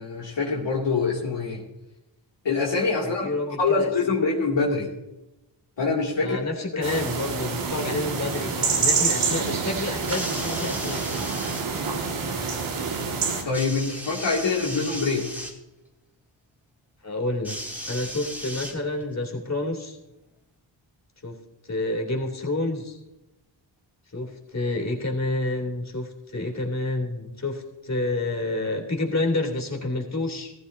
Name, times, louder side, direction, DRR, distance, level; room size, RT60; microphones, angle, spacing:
voice 1, 0.0-1.6 2.4-3.3 3.6-4.9 5.8-6.4 6.7-6.8 13.4-15.3, left 4 dB, 60° left, -3 dB, 2.6 m, -25 dB
voice 2, 3.0-3.9 6.2-11.2 17.0-17.6 17.9-20.0 21.2-21.4 21.6-23.0 24.1-30.5, left 2 dB, 35° left, 2 dB, 3.0 m, -29 dB
sound 1, 6.8-13.4, right 5 dB, 90° right, 2.0 m, -27 dB
sound 2, 10.0-11.7 13.5-15.6 17.4-19.1 20.1-20.2, equal, 5° right, 2.7 m, -36 dB
15.5 x 13.0 x 2.7 m, 0.98 s
cardioid pair, 55°, 48 cm